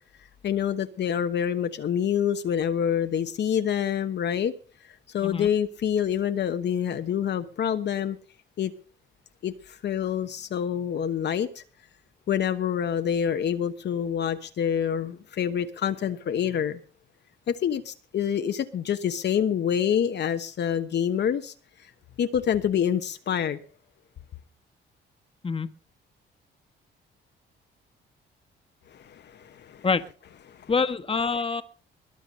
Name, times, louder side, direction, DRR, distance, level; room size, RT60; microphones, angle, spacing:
voice 1, 0.4-4.5 5.1-8.2 8.6-8.7 9.4-11.6 12.3-16.8 17.5-21.5 22.2-23.6 28.9-29.9 30.5-30.6, left 8 dB, 60° left, 1.2 m, -27 dB
voice 2, 30.7-31.6, left 4 dB, 25° left, 1.5 m, -25 dB
21.0 x 7.9 x 5.5 m
cardioid pair, 90°, 20 cm